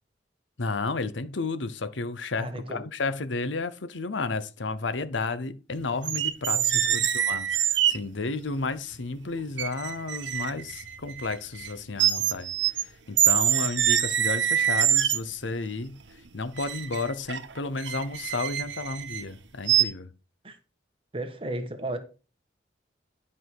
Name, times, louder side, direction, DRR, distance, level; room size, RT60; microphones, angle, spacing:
voice 1, 0.6-16.0 16.3-20.1, left 3 dB, 85° left, 0.8 m, -32 dB
voice 2, 2.4-2.9 6.5-7.1 20.4-20.6 21.1-22.0, right 1 dB, 30° right, 1.3 m, -35 dB
sound 1, 6.0-8.0 8.9-9.0 9.6-11.7 12.0-12.8 13.2-15.4 16.6-19.2 19.7-19.8, right 10 dB, 75° right, 1.1 m, -25 dB
10.5 x 5.8 x 4.7 m
head